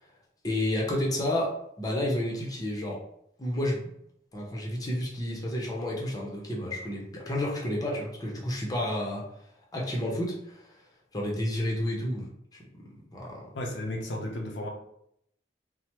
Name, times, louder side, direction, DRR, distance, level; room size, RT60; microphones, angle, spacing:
voice 1, 0.4-3.0 3.4-3.9 4.3-9.3 9.7-10.6 11.1-12.3 12.8-13.4, left 1 dB, 20° left, -3 dB, 0.7 m, -30 dB
voice 2, 13.5-14.7, left 1 dB, 85° left, 1 dB, 0.6 m, -33 dB
3.2 x 2.1 x 2.9 m, 0.73 s
head